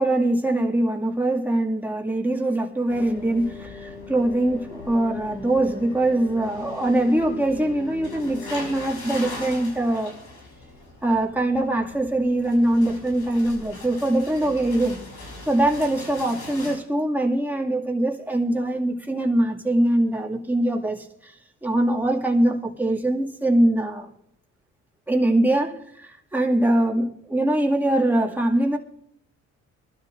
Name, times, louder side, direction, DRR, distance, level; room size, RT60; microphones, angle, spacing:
voice 1, 0.0-10.1 11.0-15.0 15.5-21.3 21.6-24.1 25.1-28.8, right 1 dB, 5° right, 2.3 m, -22 dB
sound 1, 2.9-16.8, left 3 dB, 80° left, 6.1 m, -40 dB
24.0 x 12.5 x 2.6 m
cardioid pair, 90°, 30 cm